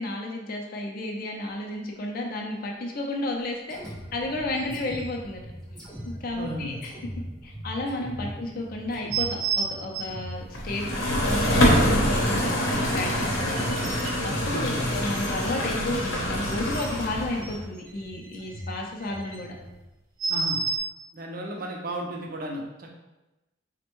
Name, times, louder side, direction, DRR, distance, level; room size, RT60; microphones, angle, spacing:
voice 1, 0.0-5.4 6.0-6.9 7.4-13.6 14.2-19.5, left 1 dB, 45° left, 0 dB, 0.4 m, -32 dB
sound 1, 3.7-19.8, equal, 5° left, 0.6 m, -42 dB
sound 2, 4.5-5.1 5.9-6.0 6.8-6.9 9.1-10.3 11.0-11.1 11.9-12.5 13.2-14.5 14.7-15.5 16.1-17.1 17.4-19.4 20.2-20.8, right 5 dB, 80° right, 0.8 m, -33 dB
voice 2, 6.4-6.8 8.2-8.3 11.8-11.9 14.5-14.9 20.3-20.6 21.1-23.0, right 1 dB, 45° right, 0 dB, 0.5 m, -34 dB
sound 3, 10.5-17.5, equal, 75° left, 0.8 m, -25 dB
4.2 x 2.1 x 3.0 m, 1.0 s
head